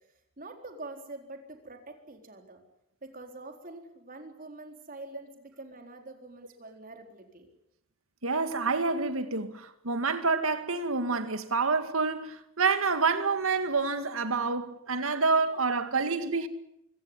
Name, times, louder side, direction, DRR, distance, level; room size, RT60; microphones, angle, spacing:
voice 1, 0.4-2.6 3.0-7.5, right 2 dB, 45° right, 4.0 m, -45 dB
voice 2, 8.2-16.5, right 4 dB, 85° right, 2.1 m, -28 dB
24.5 x 17.0 x 9.9 m
head